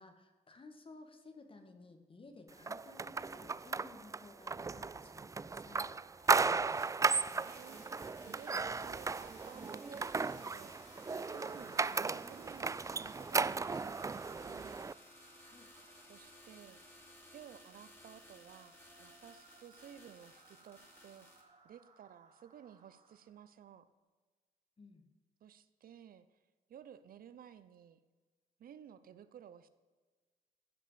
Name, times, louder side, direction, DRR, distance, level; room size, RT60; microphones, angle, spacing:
voice 1, 0.0-5.9 15.4-15.7 24.8-25.0, left 3 dB, 35° left, 7 dB, 2.0 m, -56 dB
sound 1, 2.7-14.9, right 4 dB, 20° right, 0.3 m, -35 dB
sound 2, 4.6-23.5, right 4 dB, 50° right, 2.5 m, -65 dB
sound 3, 6.2-21.4, left 1 dB, 15° left, 3.6 m, -59 dB
voice 2, 7.0-7.8 8.3-10.8 11.3-14.8 16.1-16.8 17.3-18.7 19.0-21.3 21.6-23.9 25.4-26.3 26.7-28.0 28.6-29.7, right 9 dB, 70° right, 13 dB, 0.7 m, -55 dB
14.5 x 6.0 x 6.9 m, 1.4 s
cardioid pair, 75°, 15 cm